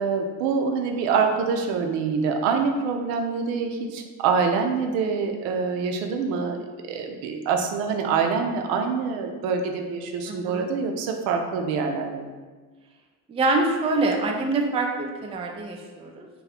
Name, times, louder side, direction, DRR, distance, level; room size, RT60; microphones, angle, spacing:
voice 1, 0.0-6.6 6.9-12.3, right 5 dB, 85° right, 4 dB, 0.5 m, -25 dB
voice 2, 10.3-10.7 13.3-16.3, right 2 dB, 15° right, 2 dB, 0.3 m, -25 dB
2.7 x 2.3 x 4.0 m, 1.4 s
supercardioid pair, 65°, 46 cm